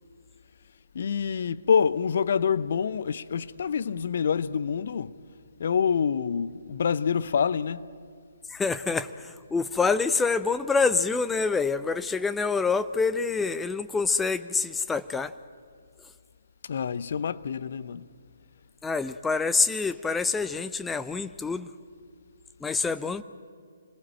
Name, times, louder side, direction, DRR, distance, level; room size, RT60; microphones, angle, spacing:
voice 1, 0.9-5.1 5.6-7.9 16.7-18.1, left 6 dB, 50° left, 0.7 m, -26 dB
voice 2, 8.5-15.3 18.8-21.7 22.6-23.2, left 4 dB, 5° left, 0.6 m, -26 dB
26.0 x 20.0 x 9.0 m
figure-of-eight pair, 135°, 0 cm